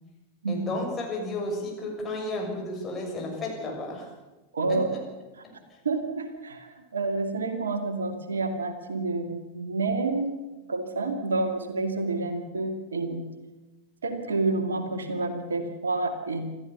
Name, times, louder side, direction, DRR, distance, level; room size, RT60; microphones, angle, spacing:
voice 1, 0.5-4.1 4.7-5.0 5.4-5.5, left 2 dB, 20° left, 0 dB, 6.8 m, -33 dB
voice 2, 4.5-4.9 5.8-10.4 10.7-13.2 14.0-16.5, right 3 dB, 70° right, 6 dB, 2.3 m, -29 dB
26.5 x 14.0 x 7.0 m, 1.1 s
figure-of-eight pair, 90°, 0 cm